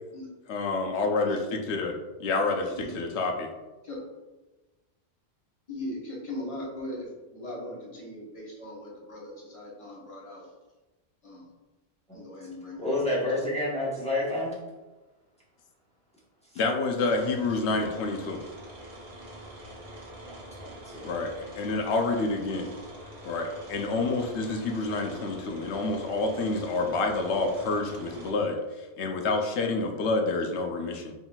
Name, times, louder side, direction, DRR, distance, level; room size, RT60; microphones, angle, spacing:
voice 1, 0.5-1.9 2.2-3.5 16.6-18.4 21.0-22.7 23.2-31.1, left 3 dB, 75° left, 3 dB, 0.8 m, -28 dB
voice 2, 2.7-3.1 3.8-4.0 5.7-10.5 11.2-11.5 12.1-13.4, left 1 dB, 30° left, -4 dB, 1.0 m, -39 dB
voice 3, 12.8-14.5 20.6-21.1 21.6-21.7, left 1 dB, 5° left, -7 dB, 1.0 m, -29 dB
sound 1, 17.1-28.3, equal, 40° right, 0.8 m, -45 dB
3.9 x 3.9 x 2.3 m, 1.2 s
omnidirectional pair, 1.2 m